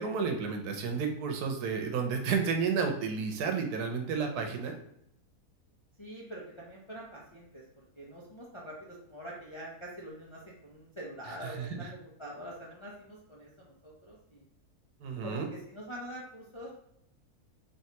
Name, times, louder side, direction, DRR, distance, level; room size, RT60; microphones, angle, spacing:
voice 1, 0.0-4.8 11.6-11.7 15.0-15.5, right 5 dB, 85° right, 4 dB, 1.3 m, -31 dB
voice 2, 6.0-14.5 15.2-16.8, equal, 40° left, -4 dB, 0.4 m, -45 dB
4.5 x 3.1 x 2.8 m, 0.75 s
omnidirectional pair, 1.6 m